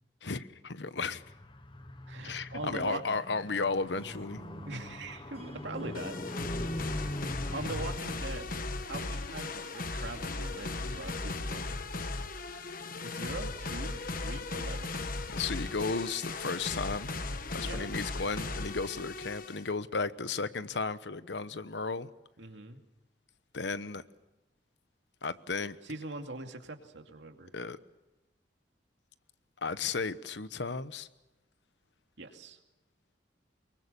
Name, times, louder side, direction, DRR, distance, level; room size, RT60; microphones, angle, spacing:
voice 1, 0.2-1.2 2.2-4.4 15.3-17.1 17.5-22.1 23.5-24.0 25.2-25.8 27.5-27.8 29.6-31.1, left 4 dB, 75° left, 13 dB, 1.0 m, -34 dB
Car, 1.1-8.0, left 1 dB, 25° left, 1.1 m, -41 dB
voice 2, 2.1-3.0 4.7-6.5 7.5-8.5 8.9-11.7 13.0-14.9 17.6-17.9 22.4-22.8 25.8-27.5 32.2-32.6, right 2 dB, 85° right, 4 dB, 2.5 m, -42 dB
sound 1, 3.9-11.4, right 1 dB, 35° right, 1.0 m, -53 dB
sound 2, 5.9-19.7, left 3 dB, 50° left, 1.3 m, -37 dB
24.5 x 23.0 x 6.8 m, 1.0 s
head